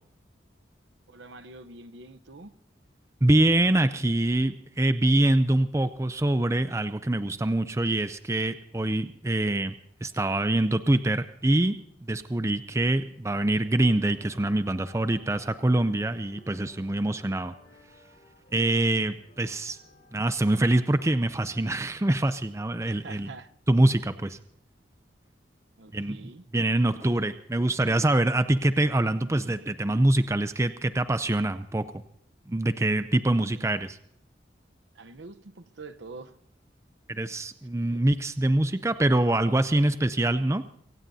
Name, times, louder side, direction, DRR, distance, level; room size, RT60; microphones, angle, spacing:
voice 1, 1.1-2.5 22.8-23.5 25.8-26.4 33.4-33.6 34.9-36.3 37.8-38.0, right 3 dB, 85° right, 10 dB, 0.9 m, -45 dB
voice 2, 3.2-9.7 10.0-17.5 18.5-19.8 20.1-23.3 23.7-24.4 25.9-31.8 32.5-34.0 37.1-40.6, right 1 dB, 15° right, 12 dB, 0.5 m, -25 dB
sound 1, 13.4-21.9, left 2 dB, 50° left, 5.9 m, -57 dB
25.0 x 16.5 x 2.8 m, 0.69 s
head